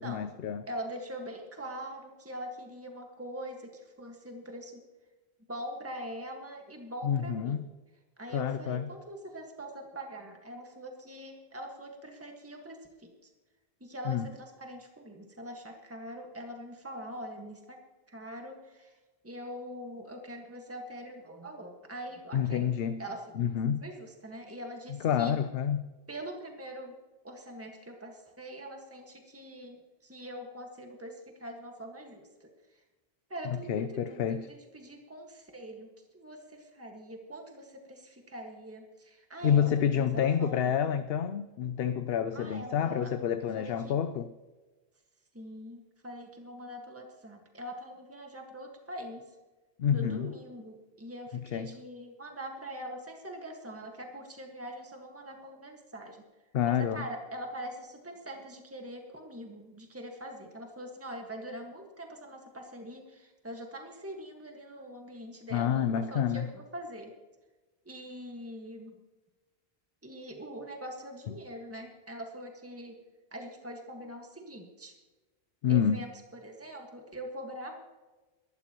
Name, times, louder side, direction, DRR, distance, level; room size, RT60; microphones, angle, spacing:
voice 1, 0.0-0.6 7.0-7.7 8.3-8.9 14.1-14.3 22.3-23.0 23.4-23.8 25.0-25.9 33.7-34.5 39.4-44.3 49.8-50.3 51.5-51.7 56.5-57.0 65.5-66.5 75.6-76.0, left 8 dB, 70° left, 0.8 m, -28 dB
voice 2, 0.7-4.8 5.5-7.6 8.2-13.3 13.8-17.8 18.1-19.0 19.2-22.7 23.0-23.3 23.8-25.3 26.1-26.9 27.2-32.8 33.3-35.9 36.1-40.7 42.3-43.1 43.6-43.9 45.3-49.2 49.9-56.2 56.6-67.1 67.8-69.0 70.0-73.0 73.3-74.9 75.7-77.8, equal, 15° right, 1.7 m, -43 dB
22.5 x 12.0 x 3.0 m
omnidirectional pair, 1.1 m